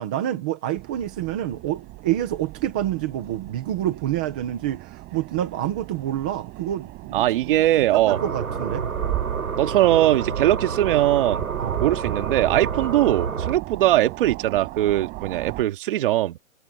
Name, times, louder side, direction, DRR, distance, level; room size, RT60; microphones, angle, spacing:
voice 1, 0.0-7.2 7.8-8.9 11.6-11.8, right 12 dB, 5° right, 0.5 m, -27 dB
sound 1, 0.8-15.6, right 20 dB, 20° right, 6.8 m, -37 dB
voice 2, 7.1-8.2 9.6-11.5 11.8-16.4, right 14 dB, 40° right, 2.2 m, -20 dB
sound 2, 8.1-13.6, right 6 dB, 85° right, 7.6 m, -29 dB
hypercardioid pair, 155°, 42 cm